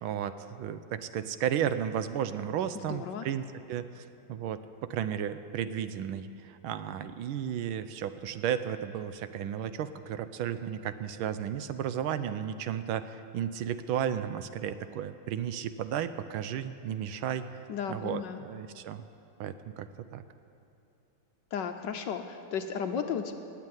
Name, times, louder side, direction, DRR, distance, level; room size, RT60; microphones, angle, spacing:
voice 1, 0.0-17.4 17.9-19.0 19.4-20.2, right 9 dB, 80° right, 12 dB, 1.4 m, -34 dB
voice 2, 2.7-3.3 17.7-18.4 21.5-23.3, left 7 dB, 65° left, 6 dB, 1.2 m, -34 dB
18.0 x 7.6 x 9.6 m, 2.7 s
omnidirectional pair, 2.4 m